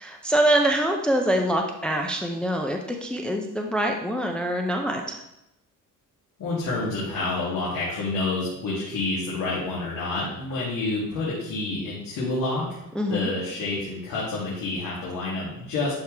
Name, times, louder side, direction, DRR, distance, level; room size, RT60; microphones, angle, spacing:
voice 1, 0.0-5.2 13.0-13.3, right 1 dB, 5° left, 2 dB, 0.6 m, -24 dB
voice 2, 6.4-15.9, left 2 dB, 85° left, -8 dB, 2.7 m, -28 dB
11.5 x 4.8 x 3.4 m, 0.86 s
cardioid pair, 155°, 32 cm